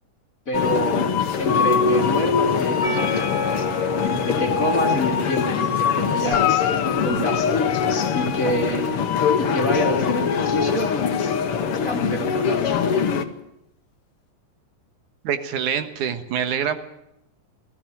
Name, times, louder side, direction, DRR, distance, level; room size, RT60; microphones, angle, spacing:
sound 1, 0.5-13.2, left 6 dB, 55° left, 2.0 m, -22 dB
voice 1, 0.5-3.7 4.0-6.5 6.8-7.5 8.1-9.1 9.4-10.9 11.8-12.8, equal, 30° left, 3 dB, 2.6 m, -27 dB
Percussion, 2.8-7.8, equal, 25° right, 5.1 m, -36 dB
Guitar, 6.3-8.8 12.7-12.8, left 12 dB, 85° left, 2.4 m, -28 dB
voice 2, 15.2-16.8, right 8 dB, 75° right, 9 dB, 2.9 m, -25 dB
21.0 x 15.0 x 9.3 m, 0.84 s
omnidirectional pair, 3.6 m